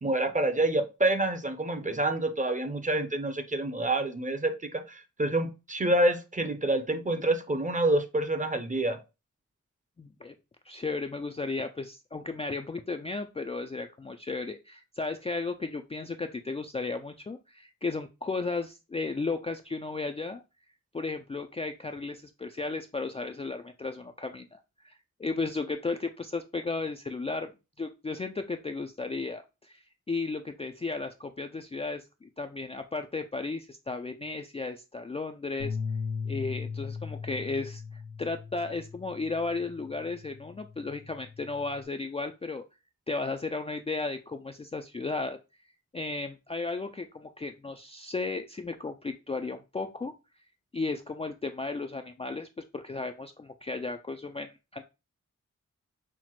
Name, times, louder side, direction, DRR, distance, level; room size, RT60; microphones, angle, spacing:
voice 1, 0.0-9.0, right 1 dB, 25° right, 0.6 m, -27 dB
voice 2, 10.0-10.3 10.7-20.4 20.9-27.5 27.8-35.8 36.3-37.8 38.2-42.6 43.1-45.4 45.9-50.1 50.7-54.8, left 3 dB, 20° left, 0.3 m, -34 dB
sound 1, 35.6-41.8, left 5 dB, 80° left, 0.7 m, -38 dB
5.7 x 2.1 x 3.0 m
cardioid pair, 55°, 31 cm